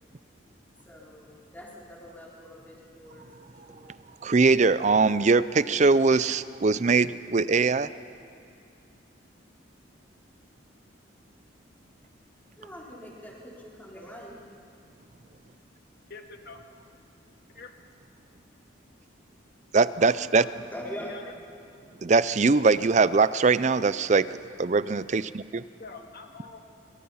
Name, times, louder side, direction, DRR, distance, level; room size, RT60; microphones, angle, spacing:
voice 1, 0.8-3.9 12.6-14.4 20.0-21.2, equal, 10° left, -4 dB, 4.0 m, -43 dB
voice 2, 4.2-7.9 19.7-20.5 22.0-25.6, right 4 dB, 40° right, 16 dB, 0.5 m, -22 dB
voice 3, 16.1-16.6 17.5-17.7 21.1-21.3 25.8-26.6, left 4 dB, 50° left, 4 dB, 1.9 m, -44 dB
27.0 x 24.5 x 5.7 m, 2.5 s
head